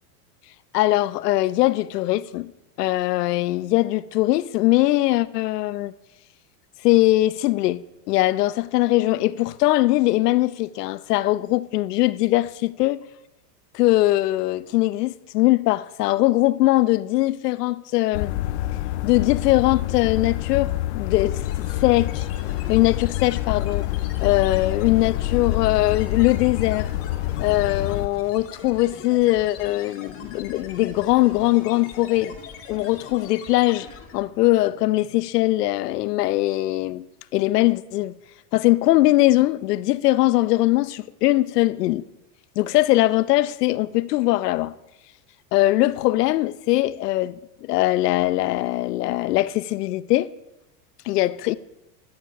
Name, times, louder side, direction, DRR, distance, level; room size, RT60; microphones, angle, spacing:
voice 1, 0.7-2.5 2.8-5.9 6.8-13.0 13.7-18.3 19.0-21.4 21.8-22.3 22.7-23.9 24.2-26.9 27.4-32.4 32.7-33.9 34.1-37.1 37.3-38.1 38.5-42.1 42.6-44.7 45.5-50.3 51.1-51.5, left 17 dB, 75° left, 0.8 m, -21 dB
sound 1, 18.1-28.1, left 15 dB, 45° left, 0.5 m, -27 dB
sound 2, 21.2-34.3, left 6 dB, 30° left, 2.0 m, -41 dB
16.5 x 11.5 x 5.9 m
supercardioid pair, 165°, 48 cm